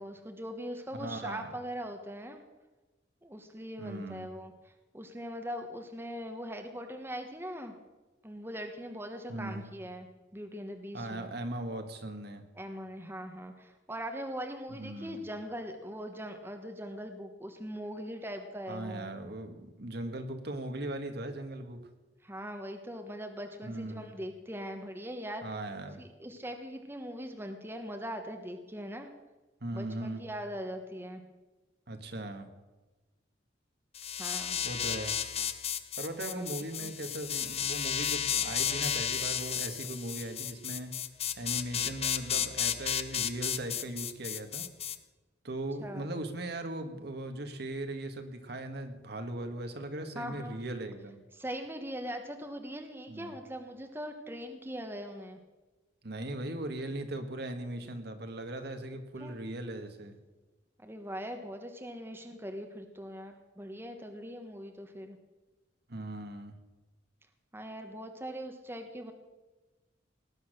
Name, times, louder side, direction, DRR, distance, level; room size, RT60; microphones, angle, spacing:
voice 1, 0.0-2.4 3.2-7.7 8.2-10.1 10.3-11.3 12.6-19.1 22.2-25.4 26.0-29.1 29.7-31.2 34.2-34.6 36.2-36.5 36.8-36.9 45.8-46.1 50.1-50.6 51.3-55.4 59.2-59.4 60.8-65.2 67.5-69.1, equal, 10° right, 5 dB, 1.2 m, -41 dB
voice 2, 0.9-1.5 3.8-4.3 9.3-9.7 10.9-12.4 14.8-15.2 18.7-21.8 23.6-24.1 25.4-26.0 29.6-30.2 31.9-32.5 34.6-35.1 36.0-40.9 41.3-44.7 45.4-51.2 53.1-53.3 56.0-60.1 65.9-66.5, right 1 dB, 55° right, 6 dB, 1.7 m, -39 dB
sound 1, 33.9-45.0, left 9 dB, 35° left, 0.7 m, -33 dB
19.0 x 9.7 x 6.6 m, 1.2 s
head